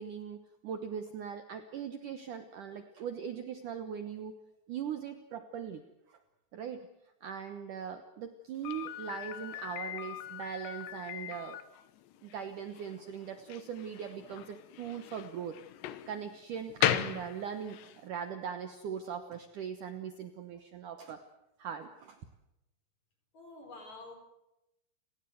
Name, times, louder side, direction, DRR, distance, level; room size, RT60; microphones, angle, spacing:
voice 1, 0.0-4.4 4.7-5.8 6.1-6.2 6.5-6.8 7.2-11.6 12.2-15.6 16.1-21.2 21.6-22.2, right 7 dB, 65° right, 8 dB, 2.1 m, -40 dB
Slam, 8.6-18.0, left 13 dB, 85° left, 3.3 m, -38 dB
voice 2, 23.3-24.2, left 2 dB, 40° left, 5 dB, 5.7 m, -48 dB
30.0 x 17.0 x 7.9 m, 0.89 s
omnidirectional pair, 5.0 m